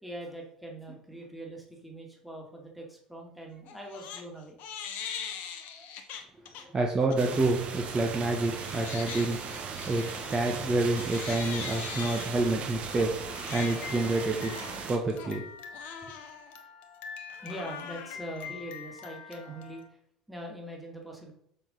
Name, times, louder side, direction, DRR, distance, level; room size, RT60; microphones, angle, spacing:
voice 1, 0.0-4.6 5.2-5.9 6.6-6.8 17.4-19.8 20.3-21.3, right 1 dB, ahead, 0 dB, 2.3 m, -43 dB
Crying sobbing, 3.7-4.2 4.6-6.6 7.1-7.4 7.9-19.9, left 7 dB, 55° left, 1.0 m, -42 dB
voice 2, 6.7-9.4 9.9-13.2 13.5-14.5 14.9-15.4, right 2 dB, 25° right, 0 dB, 1.2 m, -28 dB
sound 1, 7.2-15.0, right 6 dB, 40° right, 1.4 m, -38 dB
6.7 x 6.1 x 4.0 m, 0.73 s
figure-of-eight pair, 65°, 3 cm